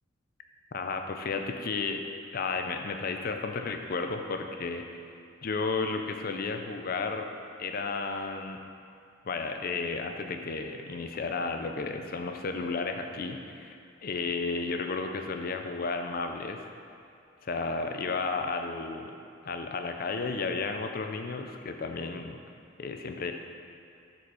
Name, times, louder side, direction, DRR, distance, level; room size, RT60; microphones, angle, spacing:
voice 1, 0.7-2.0 2.3-5.0 5.4-7.3 7.6-8.6 9.2-13.8 14.0-16.6 17.4-19.1 19.4-22.4 22.8-23.3, left 4 dB, 50° left, 5 dB, 0.5 m, -33 dB
6.9 x 4.2 x 4.8 m, 2.5 s
head